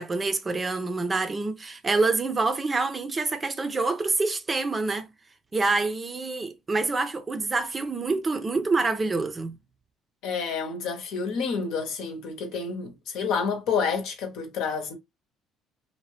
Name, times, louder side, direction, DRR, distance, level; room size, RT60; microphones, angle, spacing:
voice 1, 0.0-5.1 5.5-9.5, right 3 dB, 25° right, 0.5 m, -26 dB
voice 2, 10.2-14.9, left 5 dB, 75° left, 0.9 m, -29 dB
2.7 x 2.1 x 3.1 m
supercardioid pair, 85°, 0 cm